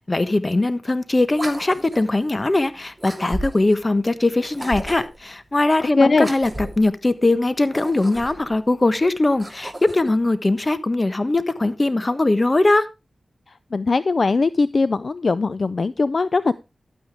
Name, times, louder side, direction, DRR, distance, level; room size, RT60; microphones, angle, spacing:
voice 1, 0.1-12.9, left 2 dB, 35° left, 1.3 m, -20 dB
sound 1, 1.3-2.1 3.0-3.8 4.5-5.2 6.1-6.9 7.6-8.6 9.2-10.1, right 1 dB, 15° right, 2.7 m, -34 dB
voice 2, 6.0-6.3 13.7-16.6, left 3 dB, 60° left, 0.4 m, -20 dB
12.0 x 9.1 x 3.5 m
cardioid pair, 45°, 0 cm